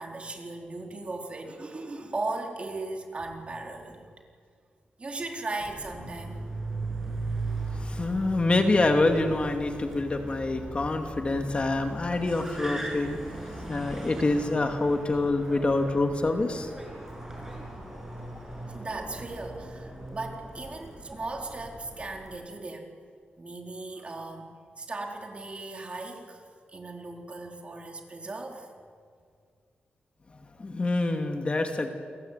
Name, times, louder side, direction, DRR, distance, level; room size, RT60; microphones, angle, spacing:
voice 1, 0.0-4.1 5.0-6.4 18.7-22.9 23.4-24.5 24.8-26.4 26.7-28.7, right 2 dB, 35° right, 2 dB, 4.1 m, -37 dB
Car, 5.6-22.4, right 2 dB, 10° right, 8.0 m, -38 dB
voice 2, 7.7-13.2 13.7-16.7 30.3-31.9, left 2 dB, 30° left, 5 dB, 2.5 m, -26 dB
29.5 x 22.0 x 9.2 m, 2.1 s
wide cardioid pair, 115°, 4 cm